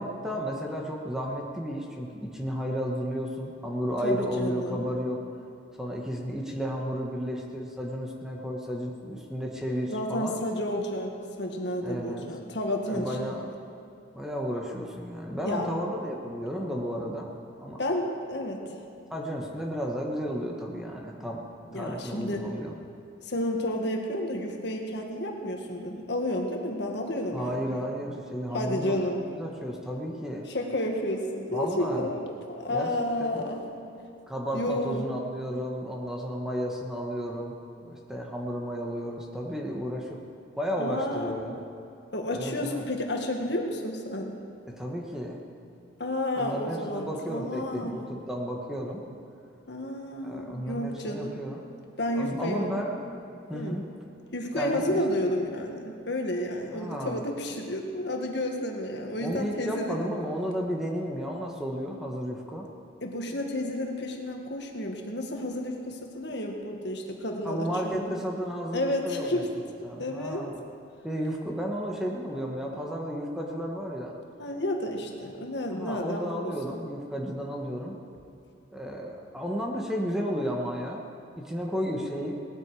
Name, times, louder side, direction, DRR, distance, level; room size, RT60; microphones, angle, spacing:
voice 1, 0.0-5.2 5.8-10.3 11.8-12.2 12.9-13.4 14.1-17.8 19.1-21.4 21.7-22.7 27.3-30.5 31.5-32.1 32.7-33.5 34.3-37.5 37.8-40.2 40.6-41.6 42.3-42.9 44.7-45.4 46.3-49.0 50.2-51.6 52.2-53.0 53.5-53.8 54.5-55.0 56.7-57.2 59.2-62.6 67.4-69.4 69.8-70.6 71.0-74.1 75.7-78.0 78.7-81.0 81.3-82.4, equal, 5° right, -1 dB, 1.4 m, -33 dB
voice 2, 4.0-4.9 9.9-13.3 15.4-15.8 17.8-18.6 21.7-22.4 23.2-27.8 28.5-29.2 30.5-33.7 34.5-35.1 40.8-41.6 42.1-44.4 46.0-48.0 49.7-51.4 52.0-52.6 53.5-53.8 54.3-60.1 63.0-68.1 68.7-69.5 70.0-70.5 74.4-76.8, left 1 dB, 65° left, 2 dB, 1.8 m, -31 dB
19.0 x 13.0 x 4.9 m, 2.8 s
head